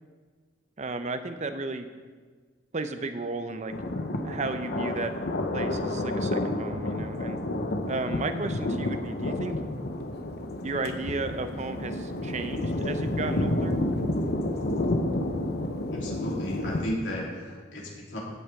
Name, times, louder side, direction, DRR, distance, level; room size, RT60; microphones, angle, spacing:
voice 1, 0.8-1.9 2.7-3.7 4.2-5.1 5.5-7.4 7.9-9.6 10.6-13.8, right 3 dB, 40° right, 9 dB, 0.7 m, -33 dB
Thunder, 3.7-16.9, left 1 dB, 60° left, 0.9 m, -30 dB
voice 2, 15.9-18.2, equal, 85° left, -4 dB, 3.1 m, -34 dB
15.0 x 8.3 x 3.6 m, 1.5 s
head